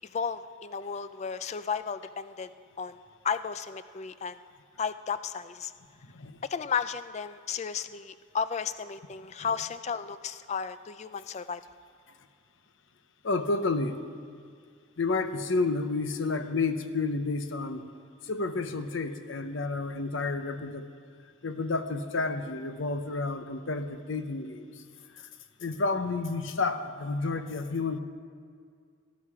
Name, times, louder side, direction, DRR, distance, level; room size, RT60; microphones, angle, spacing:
voice 1, 0.1-2.5 2.8-3.0 3.2-4.4 4.8-5.7 6.4-11.6, left 6 dB, 30° left, 13 dB, 0.3 m, -33 dB
voice 2, 13.2-14.0 15.0-17.8 18.2-20.9 21.4-24.6 25.6-28.0, left 3 dB, 60° left, 9 dB, 0.8 m, -30 dB
18.0 x 11.5 x 4.9 m, 2.1 s
head